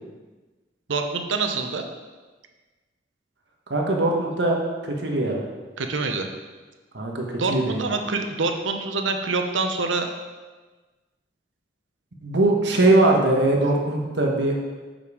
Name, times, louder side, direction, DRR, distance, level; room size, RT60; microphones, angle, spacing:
voice 1, 0.9-1.8 5.8-6.3 7.4-10.1, right 3 dB, 85° right, 5 dB, 0.8 m, -26 dB
voice 2, 3.7-4.6 4.8-5.4 6.9-7.9 12.2-14.5, right 2 dB, 70° right, 0 dB, 1.2 m, -21 dB
7.4 x 5.3 x 4.8 m, 1.3 s
head